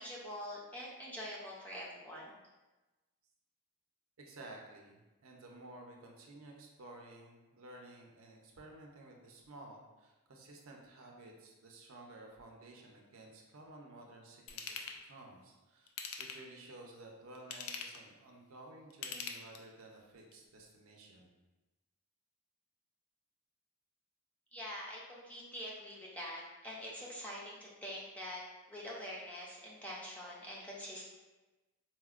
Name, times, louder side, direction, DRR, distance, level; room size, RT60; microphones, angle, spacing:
voice 1, 0.0-2.4 24.5-28.4 28.7-31.0, equal, 5° left, -5 dB, 0.4 m, -45 dB
voice 2, 4.2-15.9 16.2-21.3, right 2 dB, 70° right, 0 dB, 0.5 m, -54 dB
Ratchet pawl / Tools, 14.5-15.0 15.9-16.6 17.3-18.1 18.9-19.8 20.3-20.4, left 6 dB, 80° left, 0.4 m, -43 dB
4.1 x 2.1 x 2.4 m, 1.1 s
head